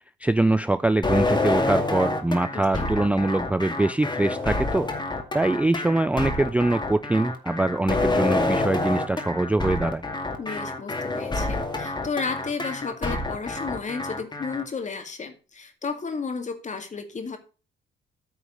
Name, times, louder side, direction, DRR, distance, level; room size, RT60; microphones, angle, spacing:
voice 1, 0.2-4.9 5.3-10.0, right 2 dB, 5° right, 14 dB, 0.4 m, -23 dB
sound 1, 1.0-14.6, left 2 dB, 20° left, 2.2 m, -27 dB
voice 2, 2.5-2.9 10.4-17.4, left 5 dB, 35° left, 6 dB, 2.2 m, -33 dB
9.4 x 4.9 x 6.4 m, 0.35 s
cardioid pair, 90°, 20 cm